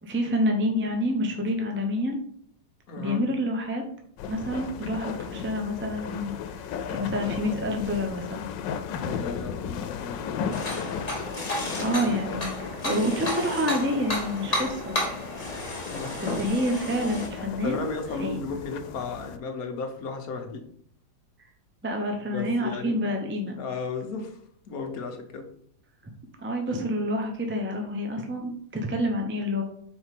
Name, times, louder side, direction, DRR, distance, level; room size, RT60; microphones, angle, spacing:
voice 1, 0.0-2.2 3.0-3.8 4.3-8.5 11.8-15.0 16.2-17.9 18.2-18.4 21.8-23.6 26.4-29.6, equal, 15° right, 2 dB, 0.4 m, -28 dB
voice 2, 2.9-3.2 8.9-11.0 15.8-16.3 17.6-20.7 22.3-23.0 23.6-24.4 24.7-25.5, left 4 dB, 60° left, 4 dB, 1.3 m, -35 dB
sound 1, 4.2-19.4, left 7 dB, 90° left, 1.3 m, -36 dB
sound 2, 10.5-17.3, left 1 dB, 25° left, 1.4 m, -32 dB
4.9 x 4.4 x 5.9 m, 0.64 s
omnidirectional pair, 1.9 m